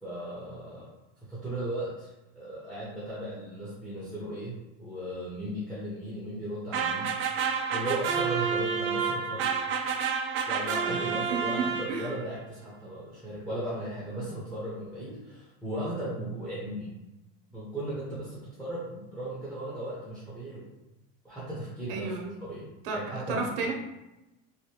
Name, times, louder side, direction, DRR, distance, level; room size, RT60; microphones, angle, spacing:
voice 1, 0.0-0.9 1.3-7.4 7.7-9.5 10.5-16.9 17.5-20.6 21.2-22.2 22.4-22.7 22.9-23.5, right 1 dB, ahead, -7 dB, 0.9 m, -36 dB
sound 1, 6.7-12.3, right 6 dB, 35° right, 0.4 m, -29 dB
voice 2, 10.8-12.1 15.1-15.2 21.9-22.4 22.8-23.0 23.3-23.7, right 4 dB, 75° right, 1 dB, 0.9 m, -33 dB
3.2 x 2.6 x 2.9 m, 0.96 s
supercardioid pair, 130°, 36 cm